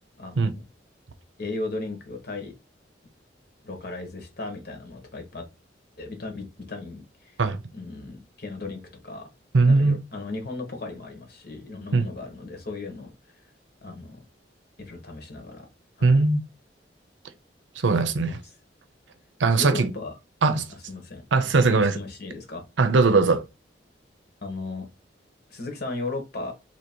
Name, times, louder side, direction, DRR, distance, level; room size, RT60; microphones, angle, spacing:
voice 1, 0.2-0.6 1.4-2.5 3.6-5.4 6.0-7.4 7.7-9.3 9.6-13.1 13.8-14.2 14.8-15.7 16.0-16.2 18.2-18.5 19.6-20.1 20.4-20.6 20.9-21.2 21.5-22.6 24.4-24.8 25.5-26.5, left 3 dB, 60° left, 1.3 m, -36 dB
voice 2, 9.5-10.0 11.9-12.0 16.0-16.4 17.8-18.4 19.4-19.9 20.4-20.6 21.3-22.0 22.8-23.4, right 3 dB, 90° right, 0.6 m, -20 dB
3.0 x 2.9 x 4.3 m
head